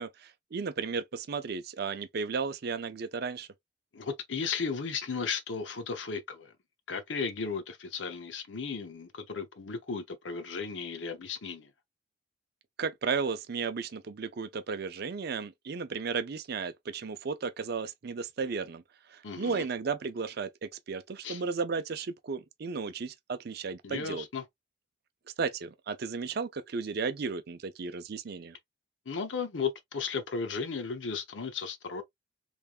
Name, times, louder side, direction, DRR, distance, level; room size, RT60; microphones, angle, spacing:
voice 1, 0.0-3.5 12.8-18.8 19.1-24.3 25.4-28.6, right 5 dB, 55° right, 0.5 m, -34 dB
voice 2, 3.9-6.5 6.9-11.7 19.2-19.7 21.2-21.4 23.8-24.4 29.1-32.0, left 5 dB, 75° left, 0.7 m, -35 dB
3.6 x 3.3 x 2.4 m
head